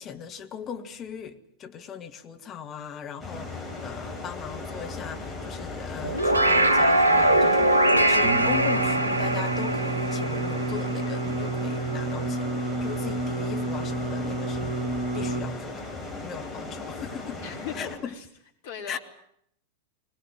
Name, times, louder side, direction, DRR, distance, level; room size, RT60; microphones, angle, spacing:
voice 1, 0.0-14.9 15.1-15.8 16.2-17.4 17.7-18.1 18.9-19.0, left 7 dB, 30° left, 1.5 m, -38 dB
sound 1, 3.2-18.0, left 2 dB, 5° left, 7.2 m, -37 dB
sound 2, 6.0-11.6, right 1 dB, 85° right, 1.0 m, -22 dB
Singing, 8.2-15.4, right 3 dB, 60° right, 3.6 m, -30 dB
voice 2, 17.4-18.3 18.6-19.0, left 7 dB, 55° left, 3.9 m, -38 dB
20.5 x 20.0 x 9.3 m
figure-of-eight pair, 90°, 0 cm